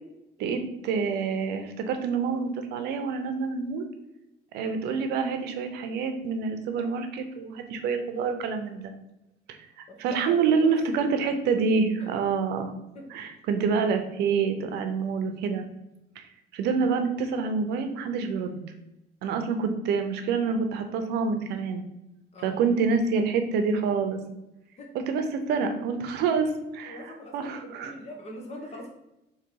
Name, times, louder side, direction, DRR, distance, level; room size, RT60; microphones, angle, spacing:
voice 1, 0.4-3.8 4.5-8.9 9.8-12.7 13.1-15.7 16.2-16.3 16.5-18.6 19.2-21.8 22.4-24.2 24.9-27.0 27.3-27.9, right 5 dB, 85° right, 7 dB, 0.7 m, -27 dB
voice 2, 9.9-11.3 12.0-12.1 12.9-13.1 22.3-22.6 24.8-24.9 26.3-26.4 26.8-28.9, left 1 dB, 40° left, 1 dB, 1.2 m, -43 dB
3.9 x 2.9 x 4.6 m, 0.89 s
cardioid pair, 110°, 17 cm